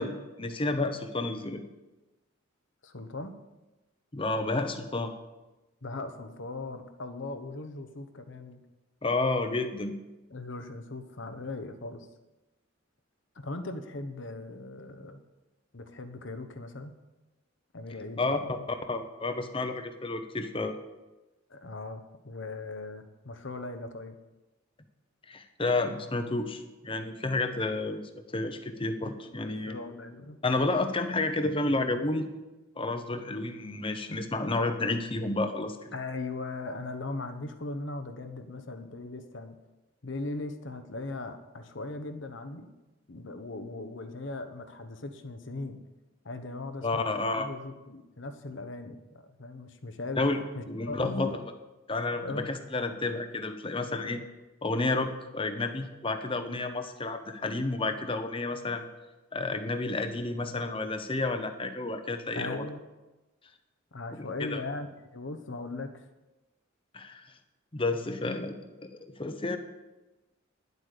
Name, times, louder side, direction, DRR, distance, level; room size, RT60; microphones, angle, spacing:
voice 1, 0.0-1.6 4.1-5.1 9.0-9.9 18.2-18.4 18.9-20.7 25.3-29.7 30.4-32.3 32.8-35.9 46.8-47.5 50.2-50.4 50.7-51.3 51.9-54.2 54.6-58.9 59.3-62.6 64.2-64.6 66.9-67.3 67.7-68.6 69.0-69.6, left 2 dB, 25° left, 8 dB, 0.9 m, -30 dB
voice 2, 2.8-3.3 5.8-8.6 10.3-12.1 13.3-15.2 15.7-17.0 17.7-18.7 21.5-24.2 29.0-30.4 35.9-39.6 40.0-42.7 43.1-45.8 46.2-50.2 50.5-51.4 52.1-52.5 54.0-54.1 62.3-62.8 63.9-66.0, left 2 dB, 60° left, 8 dB, 1.1 m, -39 dB
10.5 x 8.3 x 6.7 m, 1.1 s
head